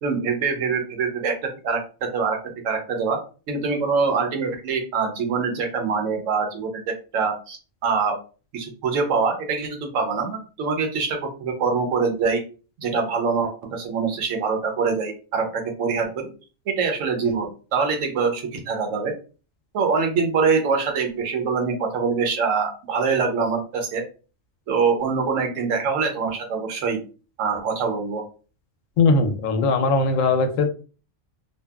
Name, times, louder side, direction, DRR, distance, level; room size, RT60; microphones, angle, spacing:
voice 1, 0.0-1.3 1.6-2.4 2.6-3.2 3.5-7.6 7.8-8.2 8.5-12.4 12.8-16.3 16.7-19.1 19.7-24.0 24.7-27.0 27.4-28.2, right 5 dB, 75° right, 4 dB, 1.0 m, -24 dB
voice 2, 29.0-30.7, left 3 dB, 85° left, 6 dB, 1.0 m, -19 dB
2.7 x 2.3 x 2.2 m, 0.36 s
omnidirectional pair, 1.3 m